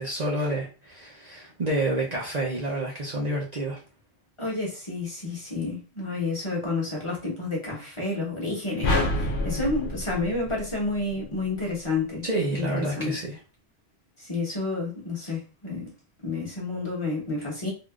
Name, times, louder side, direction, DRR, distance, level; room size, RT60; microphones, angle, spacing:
voice 1, 0.0-3.8 12.2-13.4, right 1 dB, 45° right, -3 dB, 0.7 m, -29 dB
voice 2, 4.4-12.2 12.5-12.7 12.9-13.2 14.2-15.9 16.2-17.7, left 3 dB, 30° left, -4 dB, 1.0 m, -30 dB
sound 1, 8.8-11.2, left 1 dB, 60° left, 0.8 m, -27 dB
3.5 x 2.4 x 2.3 m, 0.34 s
omnidirectional pair, 1.1 m